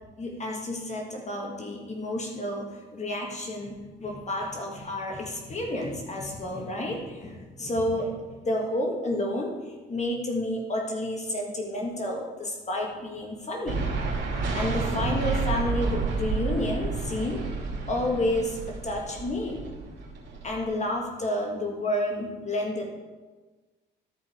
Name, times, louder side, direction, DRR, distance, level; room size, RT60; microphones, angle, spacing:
voice 1, 0.2-13.8 14.3-19.6 20.4-22.9, left 1 dB, 35° left, 0 dB, 1.6 m, -30 dB
sound 1, 13.7-20.6, right 4 dB, 65° right, 2.7 m, -30 dB
13.5 x 5.0 x 5.0 m, 1.3 s
cardioid pair, 90°, 20 cm